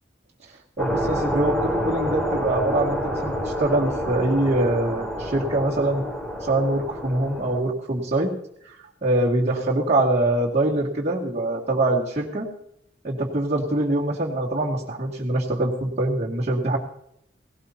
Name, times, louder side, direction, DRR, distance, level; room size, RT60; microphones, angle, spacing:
sound 1, 0.8-7.6, equal, 5° left, 2.1 m, -28 dB
voice 1, 0.8-6.0 6.4-8.3 8.6-8.7 9.0-12.5 13.0-16.8, right 2 dB, 40° right, -6 dB, 2.3 m, -24 dB
17.5 x 17.5 x 2.9 m, 0.72 s
head